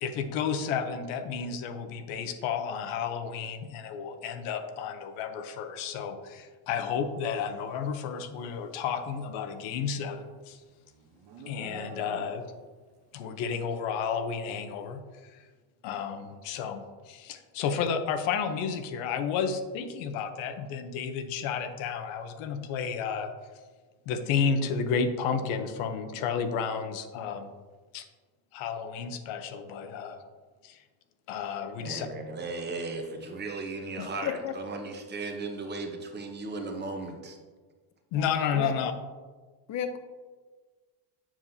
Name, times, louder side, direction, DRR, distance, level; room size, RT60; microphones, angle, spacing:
voice 1, 0.0-10.6 11.5-12.4 13.1-15.4 15.8-23.3 24.1-27.5 27.9-28.0 28.5-30.2 30.6-30.8 31.3-32.1 38.1-38.9, left 6 dB, 80° left, 8 dB, 0.9 m, -32 dB
Livestock farm animals working animals, 9.5-12.7, right 4 dB, 50° right, 0.9 m, -48 dB
voice 2, 31.8-37.4, right 3 dB, 20° right, 4 dB, 0.8 m, -36 dB
voice 3, 34.0-34.5 38.1-38.7 39.7-40.0, left 9 dB, 35° left, 8 dB, 0.6 m, -33 dB
7.4 x 7.2 x 2.7 m, 1.4 s
cardioid pair, 150°, 48 cm